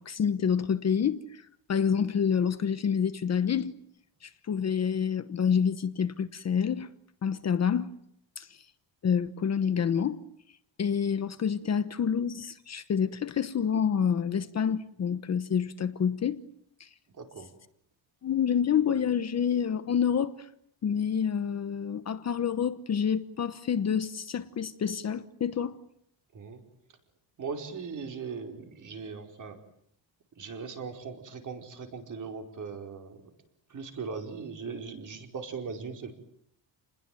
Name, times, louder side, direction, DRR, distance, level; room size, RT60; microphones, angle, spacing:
voice 1, 0.0-1.4 1.7-3.7 4.2-6.9 7.2-7.9 8.4-8.6 9.0-10.2 10.8-16.4 16.8-16.9 18.2-20.5 20.8-25.8, left 7 dB, 35° left, 1.1 m, -28 dB
voice 2, 17.2-17.5 26.3-26.6 27.4-29.6 30.4-33.2 33.7-36.1, right 5 dB, 40° right, 4.8 m, -39 dB
30.0 x 21.0 x 9.3 m
cardioid pair, 170°, 46 cm